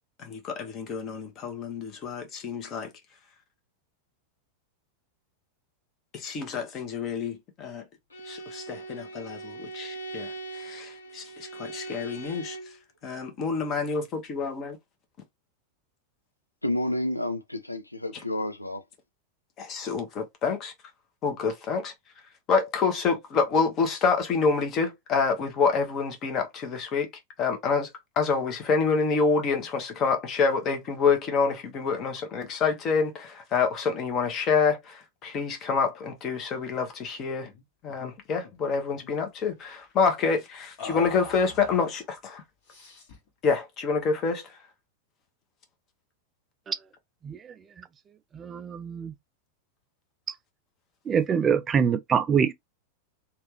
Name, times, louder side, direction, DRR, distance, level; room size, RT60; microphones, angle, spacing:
voice 1, 0.2-2.9 6.1-7.8 8.2-12.7 13.0-14.8 19.6-20.7 21.2-21.9 22.5-27.1 27.4-27.9 28.2-37.5 37.8-42.4 43.4-44.6, left 5 dB, 35° left, 1.1 m, -27 dB
Bowed string instrument, 8.1-12.8, right 3 dB, 70° left, 0.9 m, -40 dB
voice 2, 16.6-18.8, left 1 dB, 85° left, 0.4 m, -30 dB
sound 1, 37.4-37.6 37.9-38.1 38.4-39.2 40.8-42.0 42.7-43.3, left 4 dB, 50° left, 1.4 m, -43 dB
voice 3, 47.2-47.5 48.3-49.1 50.3-50.4 51.1-52.5, right 7 dB, 25° right, 0.3 m, -25 dB
3.2 x 2.4 x 3.1 m
figure-of-eight pair, 90°, 0 cm